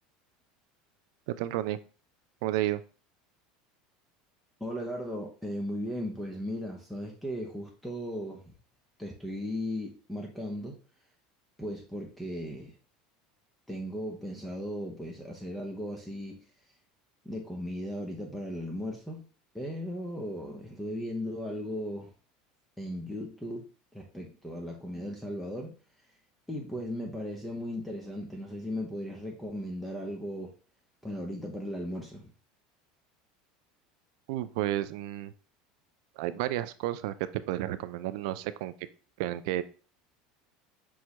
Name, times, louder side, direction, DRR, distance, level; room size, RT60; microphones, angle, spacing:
voice 1, 1.3-1.8 2.4-2.8 34.3-35.3 36.2-38.7 39.2-39.6, right 14 dB, 75° right, 13 dB, 0.3 m, -31 dB
voice 2, 4.6-8.5 9.0-10.8 11.6-12.7 13.7-16.4 17.2-19.2 19.5-22.1 22.8-23.6 23.9-25.7 26.5-30.6 31.0-32.3, equal, 5° left, 0 dB, 0.7 m, -37 dB
6.2 x 2.2 x 2.9 m, 0.37 s
supercardioid pair, 115°, 4 cm